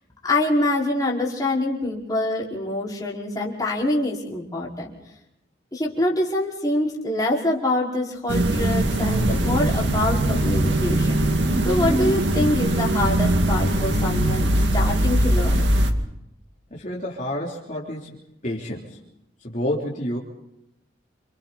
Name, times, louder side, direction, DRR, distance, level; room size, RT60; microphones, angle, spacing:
voice 1, 0.2-4.9 5.7-11.2 11.6-15.7, left 1 dB, 20° left, -4 dB, 5.1 m, -25 dB
sound 1, 8.3-15.9, right 1 dB, 70° right, 2.2 m, -21 dB
voice 2, 16.7-18.2 18.4-19.0 19.4-20.2, left 1 dB, 40° left, -5 dB, 3.4 m, -29 dB
29.0 x 28.0 x 4.2 m, 0.84 s
head